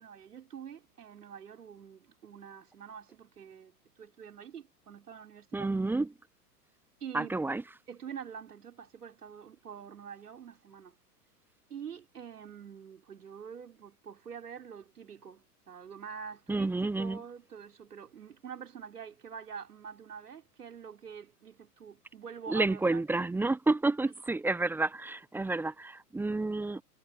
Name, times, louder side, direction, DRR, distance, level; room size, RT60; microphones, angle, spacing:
voice 1, 0.0-5.7 7.0-7.4 7.9-10.9 11.7-23.0 24.0-24.1, right 7 dB, 70° right, 4.6 m, -46 dB
voice 2, 5.5-6.1 7.1-7.6 16.5-17.2 22.5-26.8, right 2 dB, 5° right, 0.8 m, -30 dB
figure-of-eight pair, 95°, 48 cm